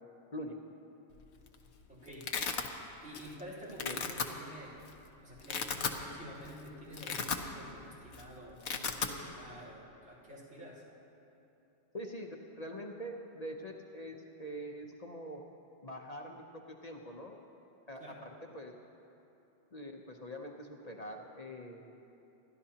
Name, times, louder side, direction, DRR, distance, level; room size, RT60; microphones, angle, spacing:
Domestic sounds home sounds, 1.2-1.6 1.8-2.7 3.1-3.4 3.7-4.3 4.9-5.0 5.3-6.0 6.4-6.5 6.9-7.8 8.0-8.2 8.5-9.1, left 6 dB, 75° left, 1.1 m, -35 dB
voice 1, 1.9-2.3 3.0-4.8 5.2-10.8 18.0-18.2, equal, 70° right, -7 dB, 4.3 m, -49 dB
voice 2, 11.9-15.4 15.8-17.4 17.9-18.7 19.7-21.8, equal, 40° left, 1 dB, 0.9 m, -44 dB
27.5 x 12.0 x 2.9 m, 3.0 s
omnidirectional pair, 1.2 m